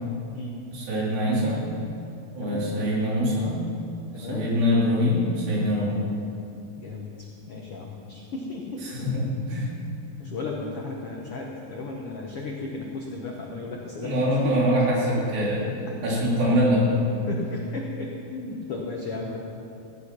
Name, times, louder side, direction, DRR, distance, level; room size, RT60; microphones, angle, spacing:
voice 1, 0.7-1.6 2.3-3.6 4.2-6.0 8.8-9.7 14.0-15.6 16.0-17.0, equal, 70° right, -6 dB, 4.8 m, -24 dB
voice 2, 4.1-4.5 6.0-6.1 6.8-9.1 10.2-14.6 17.3-19.4, left 3 dB, 80° left, -1 dB, 1.3 m, -35 dB
16.0 x 9.8 x 6.0 m, 2.8 s
omnidirectional pair, 4.3 m